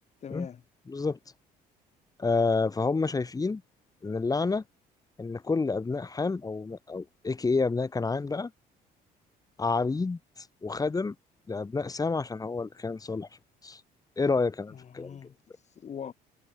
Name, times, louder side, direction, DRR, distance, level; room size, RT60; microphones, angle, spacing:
voice 1, 0.2-0.6 14.7-16.1, left 8 dB, 40° left, 3.1 m, -42 dB
voice 2, 0.9-1.2 2.2-3.6 4.0-4.6 5.2-8.5 9.6-11.1 11.5-13.3 13.6-13.8 14.2-15.2, left 4 dB, 20° left, 4.8 m, -29 dB
cardioid pair, 110°, 17 cm